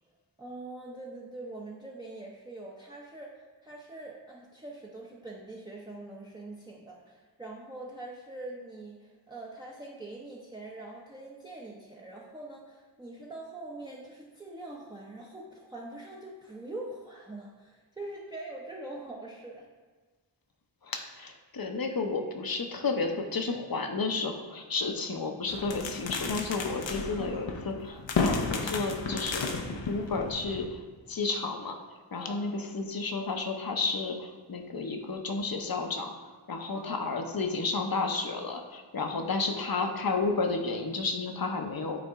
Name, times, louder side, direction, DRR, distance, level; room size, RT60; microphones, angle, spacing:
voice 1, 0.4-19.7 27.0-27.3 32.1-32.5 36.7-37.3, right 2 dB, 10° right, -4 dB, 0.7 m, -43 dB
voice 2, 20.8-29.6 29.9-30.8 31.1-36.1 36.5-42.0, left 3 dB, 55° left, 4 dB, 0.8 m, -32 dB
sound 1, 25.5-30.7, left 4 dB, 85° left, 0.8 m, -33 dB
8.4 x 4.1 x 3.6 m, 1.4 s
wide cardioid pair, 95°, 43 cm